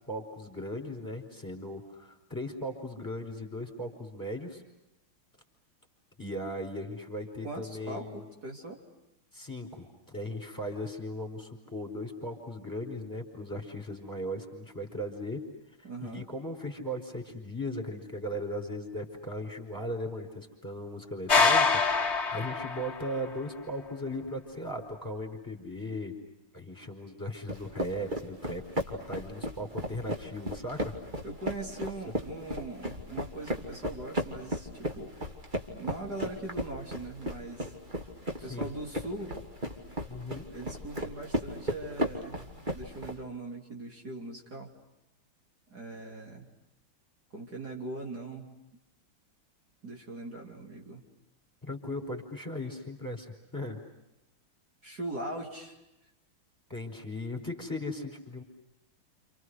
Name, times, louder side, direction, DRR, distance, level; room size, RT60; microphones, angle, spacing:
voice 1, 0.0-4.6 6.2-8.2 9.3-15.4 15.8-21.8 22.3-26.1 26.5-30.9 38.4-38.7 40.1-40.4 51.6-53.3 53.5-53.8 56.7-58.4, left 1 dB, 10° left, 3 dB, 4.8 m, -37 dB
voice 2, 7.4-8.8 15.8-16.3 31.2-35.3 35.7-37.7 38.4-39.4 40.5-44.7 45.7-46.5 47.3-48.6 49.8-51.0 54.8-55.8, right 2 dB, 45° right, 0 dB, 3.9 m, -40 dB
sound 1, 21.3-23.2, left 4 dB, 35° left, 1.8 m, -25 dB
sound 2, 27.5-43.2, equal, 20° right, 2.8 m, -35 dB
29.5 x 29.5 x 6.4 m, 0.91 s
omnidirectional pair, 2.3 m